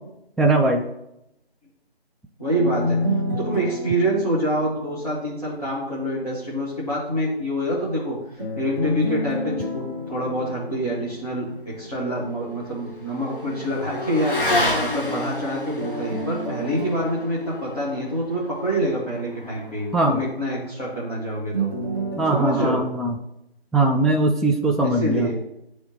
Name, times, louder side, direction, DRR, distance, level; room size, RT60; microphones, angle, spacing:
voice 1, 0.4-0.8 19.9-20.2 22.2-23.1 23.7-25.3, right 2 dB, ahead, 1 dB, 0.3 m, -20 dB
voice 2, 2.4-3.0 3.4-14.4 14.8-21.7 22.3-22.8 24.8-25.3, equal, 35° left, -9 dB, 1.3 m, -26 dB
sound 1, 2.6-5.6 8.4-11.6 15.8-18.9 21.5-22.3, equal, 20° left, 1.3 m, -30 dB
Motorcycle / Accelerating revving vroom, 11.5-20.3, left 1 dB, 55° left, 1.2 m, -31 dB
9.7 x 3.4 x 2.8 m, 0.85 s
figure-of-eight pair, 170°, 32 cm